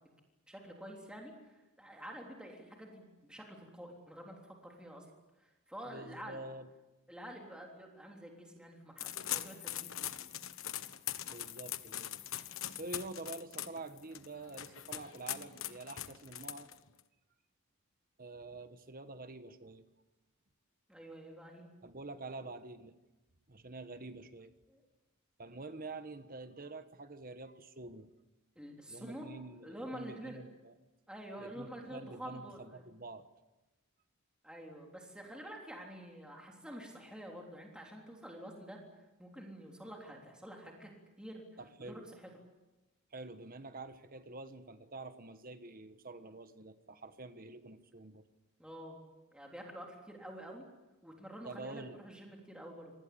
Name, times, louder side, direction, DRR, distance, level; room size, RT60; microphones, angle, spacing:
voice 1, 0.5-4.3 4.6-5.1 5.4-6.5 7.1-10.1 20.9-21.7 24.7-24.8 28.6-29.3 29.6-30.4 31.1-32.9 34.4-38.8 39.2-40.9 41.2-41.5 41.8-42.2 48.6-49.0 49.3-50.7 51.0-52.9, equal, 5° right, 0 dB, 3.5 m, -48 dB
voice 2, 5.8-6.7 11.3-12.1 12.7-16.7 18.2-19.8 21.8-22.9 23.5-24.5 25.4-28.1 28.9-30.7 31.4-33.3 41.6-42.1 43.1-48.2 51.4-52.0, right 2 dB, 40° right, 10 dB, 1.3 m, -47 dB
sound 1, 9.0-17.0, left 12 dB, 60° left, 1.3 m, -41 dB
27.5 x 20.0 x 8.5 m, 1.1 s
head